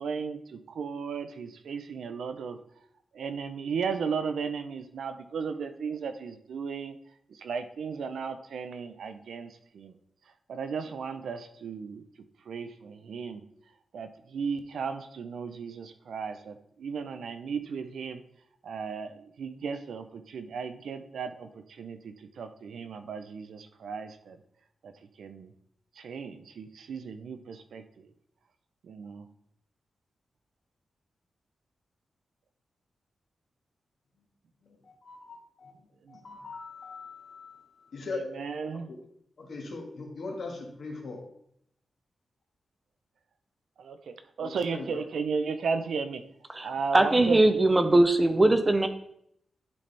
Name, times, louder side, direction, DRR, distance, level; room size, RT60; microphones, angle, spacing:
voice 1, 0.0-2.6 3.1-7.0 7.4-9.9 10.5-12.0 12.5-13.4 13.9-18.2 18.6-24.4 24.8-24.9 25.2-25.5 26.0-27.8 28.8-29.2 36.1-36.2 38.3-38.9 43.8-46.2 46.6-47.4, right 5 dB, 85° right, 9 dB, 0.6 m, -35 dB
voice 2, 34.6-38.2 38.7-39.0 39.4-41.2 44.4-45.0, left 3 dB, 55° left, 1 dB, 1.5 m, -41 dB
voice 3, 46.5-48.9, right 2 dB, 20° right, 8 dB, 0.5 m, -21 dB
10.5 x 4.2 x 3.3 m, 0.71 s
wide cardioid pair, 170°, 0 cm